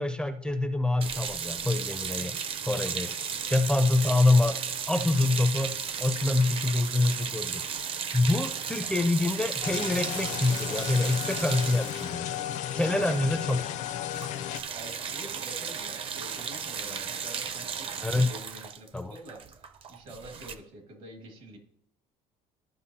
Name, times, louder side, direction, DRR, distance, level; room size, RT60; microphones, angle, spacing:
voice 1, 0.0-2.4 2.7-3.1 3.5-4.6 4.9-7.7 8.1-12.3 12.7-13.7 18.0-18.3 18.9-19.1, left 2 dB, 5° left, 9 dB, 0.4 m, -26 dB
sound 1, 1.0-13.4 13.7-13.9 14.1-20.6, right 7 dB, 40° right, 0.6 m, -35 dB
sound 2, 9.6-14.6, left 11 dB, 60° left, 0.5 m, -34 dB
voice 2, 12.7-13.5 14.7-21.6, right 1 dB, 75° right, 2 dB, 2.2 m, -46 dB
13.0 x 5.4 x 2.8 m, 0.79 s
cardioid pair, 125°, 14 cm